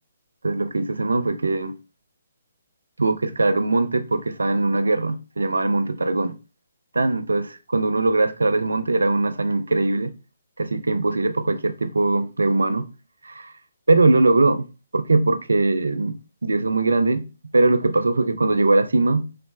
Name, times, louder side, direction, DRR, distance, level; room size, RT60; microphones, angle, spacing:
voice 1, 0.4-1.8 3.0-6.4 6.9-10.1 10.6-12.9 13.2-13.5 13.9-14.7 14.9-17.3 17.5-19.3, right 2 dB, 85° right, 0.3 m, -21 dB
3.2 x 2.1 x 3.1 m
figure-of-eight pair, 140°, 0 cm